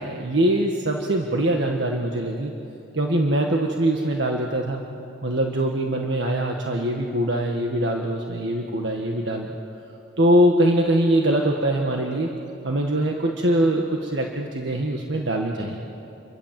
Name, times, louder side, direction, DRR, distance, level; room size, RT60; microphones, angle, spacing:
voice 1, 0.0-2.5 2.9-4.8 5.2-9.5 10.2-12.3 12.6-15.8, right 1 dB, 70° right, 1 dB, 1.6 m, -22 dB
29.0 x 23.5 x 7.6 m, 3.0 s
head